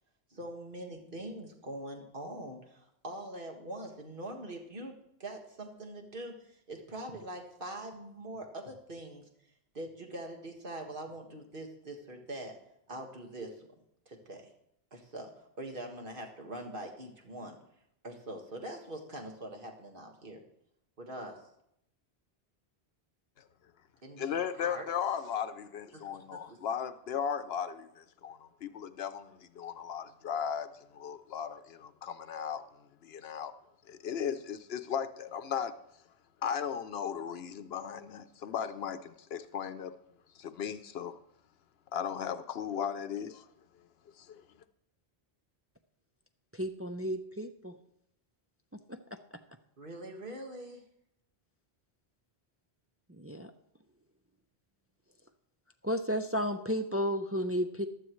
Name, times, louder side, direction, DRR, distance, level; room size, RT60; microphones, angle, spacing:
voice 1, 0.3-9.3 9.7-12.6 12.9-13.7 14.1-14.5 14.9-17.6 18.0-20.4 21.0-21.4 24.0-24.9 26.3-26.6 49.8-50.8, right 1 dB, 55° right, 2 dB, 1.9 m, -43 dB
voice 2, 24.2-32.6 33.0-33.5 33.9-35.7 36.4-39.9 40.4-41.1 41.9-43.4 44.2-44.4, left 8 dB, 70° left, 12 dB, 0.9 m, -36 dB
voice 3, 46.5-47.7 48.9-49.0 53.1-53.5 55.8-57.9, equal, 20° right, 6 dB, 0.4 m, -33 dB
15.0 x 12.0 x 3.1 m, 0.76 s
omnidirectional pair, 1.1 m